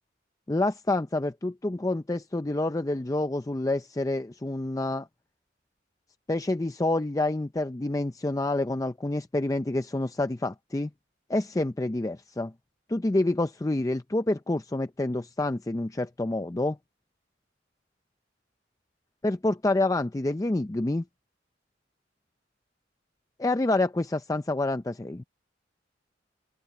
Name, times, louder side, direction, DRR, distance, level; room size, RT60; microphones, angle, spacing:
voice 1, 0.5-5.1 6.3-10.9 11.3-12.5 12.9-16.8 19.2-21.0 23.4-25.2, left 2 dB, 20° left, 0.5 m, -28 dB
open air
head